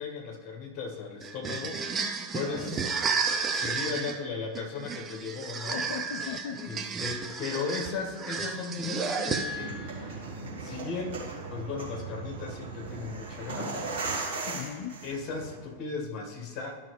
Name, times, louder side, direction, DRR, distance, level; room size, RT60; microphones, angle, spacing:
voice 1, 0.0-1.8 2.3-3.2 3.5-5.8 6.6-10.3 10.6-13.9 15.0-16.8, left 4 dB, 30° left, 0 dB, 1.8 m, -36 dB
sound 1, 1.2-9.8, right 4 dB, 20° right, 0.6 m, -32 dB
voice 2, 2.4-2.8 5.7-6.7 10.4-10.5 14.5-15.0, left 7 dB, 50° left, 7 dB, 0.4 m, -38 dB
sound 2, 9.4-15.6, right 3 dB, 60° right, 2.4 m, -37 dB
12.0 x 5.6 x 3.4 m, 1.4 s
figure-of-eight pair, 90°, 0 cm